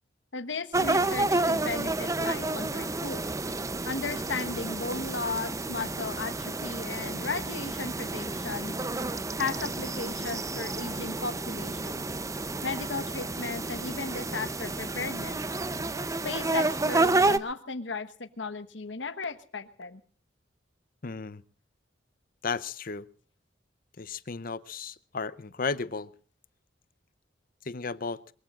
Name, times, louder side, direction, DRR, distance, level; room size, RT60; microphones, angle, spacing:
voice 1, 0.3-3.2 3.9-8.7 9.4-12.0 12.6-15.4 16.2-20.0, left 4 dB, 75° left, 1.3 m, -35 dB
sound 1, 0.7-17.4, right 2 dB, 15° right, 0.7 m, -30 dB
voice 2, 21.0-21.4 22.4-23.1 24.0-26.1 27.6-28.2, left 4 dB, 50° left, 0.7 m, -34 dB
23.0 x 22.5 x 2.5 m
head